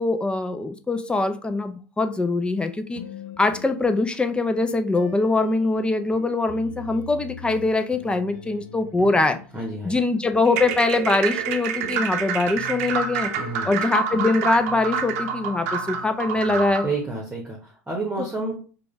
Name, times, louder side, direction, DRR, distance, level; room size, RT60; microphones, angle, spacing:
voice 1, 0.0-3.0 3.4-9.4 9.9-13.3 13.7-16.8, left 2 dB, 10° left, 8 dB, 0.4 m, -23 dB
sound 1, 2.9-4.4 4.9-17.2, left 7 dB, 70° left, 0.6 m, -43 dB
voice 2, 9.5-10.0 13.3-13.7 16.8-18.6, right 3 dB, 10° right, -1 dB, 1.2 m, -30 dB
sound 2, 10.5-16.9, right 7 dB, 60° right, 0.7 m, -28 dB
5.0 x 2.3 x 3.3 m, 0.38 s
figure-of-eight pair, 80°, 9 cm